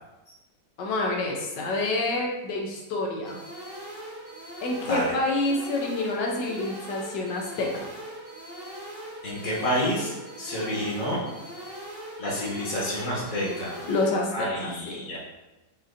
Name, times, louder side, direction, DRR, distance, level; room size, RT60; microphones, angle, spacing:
voice 1, 0.8-3.4 4.6-7.9 13.8-15.0, left 2 dB, 85° left, 0 dB, 1.4 m, -28 dB
sound 1, 3.2-14.2, right 1 dB, 90° right, 2.4 m, -41 dB
voice 2, 9.2-11.3 12.2-13.8 14.3-15.2, equal, 55° left, -4 dB, 1.5 m, -29 dB
6.1 x 2.7 x 2.5 m, 1.0 s
omnidirectional pair, 1.8 m